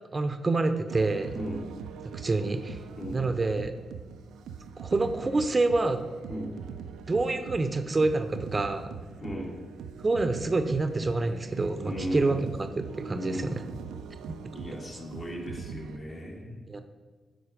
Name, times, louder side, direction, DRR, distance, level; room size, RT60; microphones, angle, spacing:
voice 1, 0.1-1.4 2.1-2.8 3.1-3.7 4.8-6.0 7.1-8.9 10.0-13.6 14.3-14.4 16.7-16.8, right 3 dB, 35° right, 8 dB, 0.7 m, -27 dB
sound 1, 0.9-16.0, right 7 dB, 85° right, 0.4 m, -42 dB
voice 2, 11.8-12.4 13.1-13.7 14.5-16.6, equal, 45° left, -2 dB, 2.3 m, -36 dB
9.6 x 3.9 x 5.1 m, 1.4 s
supercardioid pair, 50°, 0 cm